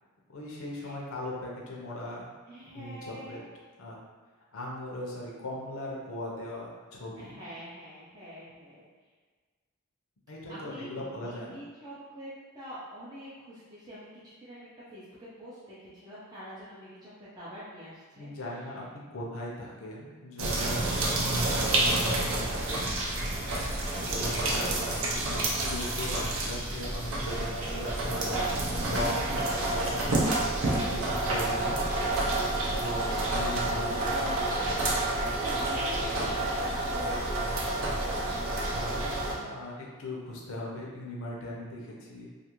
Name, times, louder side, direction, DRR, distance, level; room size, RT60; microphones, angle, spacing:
voice 1, 0.3-2.3 2.7-3.4 3.8-4.0 4.5-7.3 10.3-11.6 18.2-18.8 19.1-22.9 24.1-28.7 28.9-29.2 29.6-29.9 30.6-31.8 32.7-33.9 38.4-42.3, left 1 dB, 70° left, -3 dB, 0.5 m, -39 dB
voice 2, 2.5-3.4 7.2-8.9 10.5-12.3 12.5-18.3 18.6-18.7 34.1-34.8 35.1-37.6, equal, 20° right, -10 dB, 0.5 m, -45 dB
sound 1, 20.4-39.3, right 2 dB, 65° right, 0.5 m, -29 dB
2.4 x 2.4 x 2.9 m, 1.5 s
head